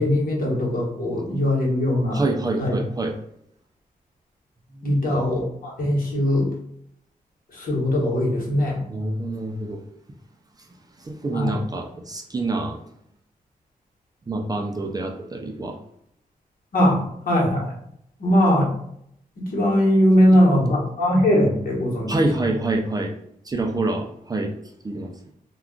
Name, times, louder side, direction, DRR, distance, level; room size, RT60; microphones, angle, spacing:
voice 1, 0.0-2.2 2.6-2.8 4.8-6.5 7.5-8.8 11.3-11.6 16.7-17.0 17.3-17.7 18.2-18.7 19.4-22.2, left 1 dB, 70° left, -3 dB, 1.1 m, -20 dB
voice 2, 2.1-3.2 4.8-4.9 8.9-9.8 11.0-12.8 14.3-15.8 22.1-23.1 23.5-24.5 24.8-25.3, right 2 dB, 25° right, 1 dB, 0.4 m, -26 dB
2.3 x 2.3 x 3.6 m, 0.71 s
wide cardioid pair, 150°, 15 cm